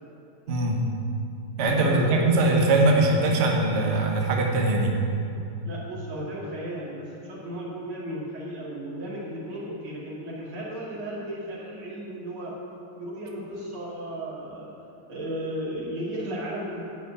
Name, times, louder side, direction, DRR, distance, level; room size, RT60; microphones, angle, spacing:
voice 1, 0.5-0.8 1.6-4.9, right 2 dB, 40° right, 0 dB, 1.1 m, -21 dB
voice 2, 1.8-2.2 5.6-12.5 13.0-14.7 15.1-16.8, right 1 dB, 80° right, -6 dB, 3.3 m, -35 dB
11.5 x 5.0 x 8.3 m, 2.6 s
omnidirectional pair, 2.3 m